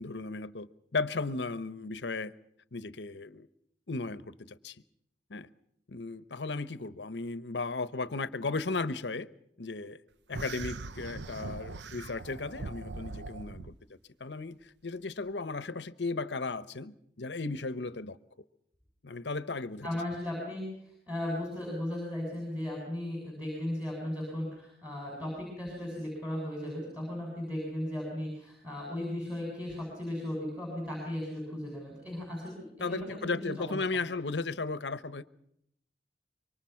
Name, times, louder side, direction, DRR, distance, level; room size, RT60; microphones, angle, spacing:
voice 1, 0.0-2.3 2.7-3.5 3.9-4.8 5.3-5.5 5.9-9.3 9.6-10.0 10.3-13.7 14.2-18.2 19.0-19.9 32.8-35.3, left 3 dB, 85° left, 1.0 m, -35 dB
sound 1, 10.3-13.7, right 3 dB, 85° right, 0.8 m, -41 dB
voice 2, 19.8-33.7, left 1 dB, 10° right, 7.7 m, -36 dB
26.0 x 24.5 x 5.9 m
head